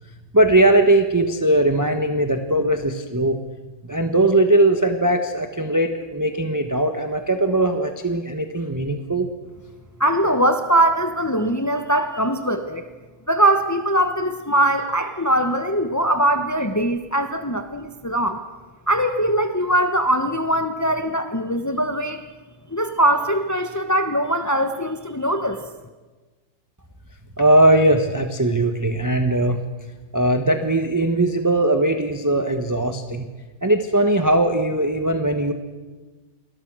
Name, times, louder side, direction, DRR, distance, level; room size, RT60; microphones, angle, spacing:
voice 1, 0.3-3.4 3.9-9.3 27.4-29.6 30.1-33.2 33.6-35.5, right 1 dB, 10° right, 6 dB, 1.1 m, -19 dB
voice 2, 10.0-12.9 13.3-18.4 18.9-22.2 22.7-25.6, right 1 dB, 15° left, 7 dB, 0.5 m, -21 dB
28.5 x 21.0 x 6.3 m, 1.3 s
omnidirectional pair, 2.2 m